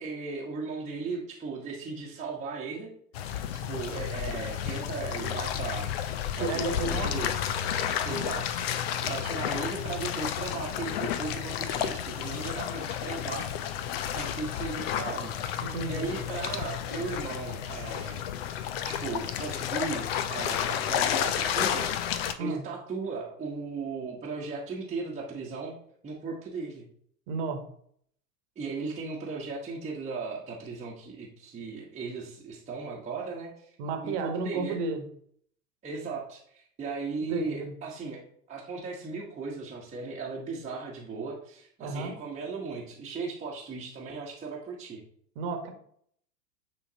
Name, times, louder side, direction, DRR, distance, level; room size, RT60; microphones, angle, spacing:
voice 1, 0.0-2.9 3.3-5.9 6.4-7.3 8.0-8.6 9.1-13.5 14.1-15.3 15.6-18.2 18.8-21.9 22.4-25.7 26.0-26.8 28.6-33.7 34.0-34.8 35.8-38.2 38.5-45.0, right 4 dB, 15° right, -4 dB, 1.1 m, -37 dB
sound 1, 3.1-22.3, left 9 dB, 40° left, 0.5 m, -31 dB
voice 2, 6.3-7.2 8.0-8.3 15.6-16.1 22.4-22.7 27.3-27.7 33.8-35.0 37.3-37.7 41.8-42.1 45.3-45.7, right 3 dB, 45° right, 5 dB, 1.3 m, -32 dB
9.1 x 3.7 x 2.8 m, 0.64 s
figure-of-eight pair, 90°, 49 cm